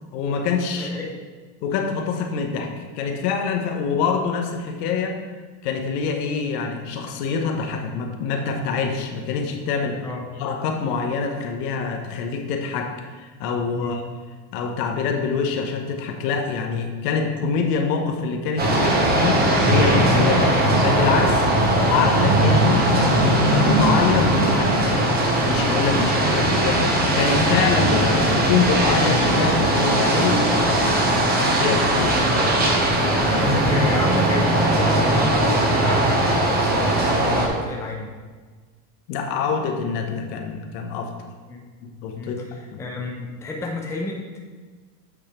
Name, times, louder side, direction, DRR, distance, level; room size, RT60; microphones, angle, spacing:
voice 1, 0.1-1.0 1.6-5.2 5.6-10.1 10.4-14.0 14.5-20.5 20.8-21.5 21.9-24.8 25.5-26.8 27.2-31.0 31.5-32.2 39.1-41.1 41.8-42.4 42.7-42.8, left 5 dB, 75° left, 4 dB, 1.1 m, -25 dB
voice 2, 0.7-1.1 10.0-10.3 13.7-14.0 20.3-20.5 26.0-26.9 31.3-31.5 32.2-32.6 33.3-38.1 41.5-41.6 42.2-44.4, left 2 dB, 5° left, 0 dB, 0.5 m, -31 dB
sound 1, 18.6-37.5, right 1 dB, 20° right, 1.0 m, -19 dB
8.4 x 3.3 x 4.4 m, 1.4 s
supercardioid pair, 130°, 48 cm